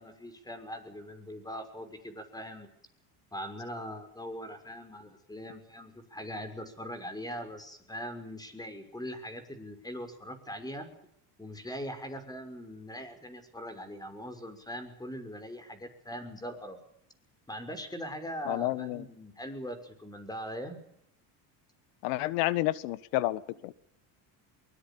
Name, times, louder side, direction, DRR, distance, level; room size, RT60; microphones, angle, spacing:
voice 1, 0.0-2.7 3.3-10.9 11.4-16.8 17.5-20.8, equal, 10° left, 9 dB, 6.0 m, -41 dB
voice 2, 18.4-19.1 22.0-23.7, left 17 dB, 85° left, 17 dB, 1.5 m, -30 dB
24.0 x 21.0 x 7.1 m, 0.69 s
cardioid pair, 115°, 44 cm